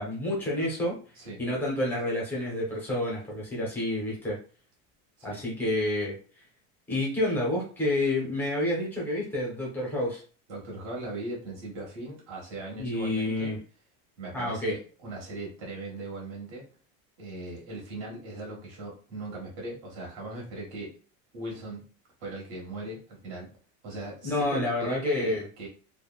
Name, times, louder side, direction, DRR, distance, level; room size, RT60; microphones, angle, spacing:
voice 1, 0.0-1.0 1.4-4.4 5.2-6.2 6.9-10.2 12.8-13.6 14.3-14.8 24.2-25.5, left 1 dB, 5° left, -4 dB, 0.5 m, -29 dB
voice 2, 10.5-13.5 14.2-16.7 17.2-20.9 21.3-21.9 22.2-23.5 23.8-25.7, right 1 dB, 55° right, -2 dB, 1.5 m, -39 dB
3.3 x 2.1 x 2.3 m, 0.38 s
cardioid pair, 180°, 40 cm